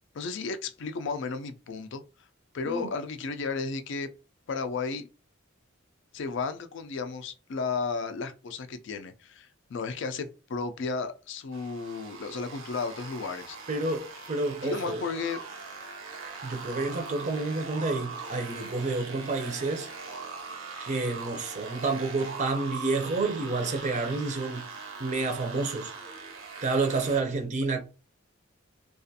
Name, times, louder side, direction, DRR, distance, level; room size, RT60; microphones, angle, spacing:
voice 1, 0.1-2.0 2.5-4.1 4.5-5.1 6.1-13.6 14.6-15.4, left 4 dB, 60° left, 0.4 m, -33 dB
sound 1, 11.5-27.2, right 4 dB, 85° right, 0.7 m, -41 dB
voice 2, 13.7-15.0 16.4-19.9 20.8-24.6 25.0-25.9 26.6-27.8, right 3 dB, 35° right, 0.5 m, -29 dB
2.4 x 2.3 x 2.6 m
head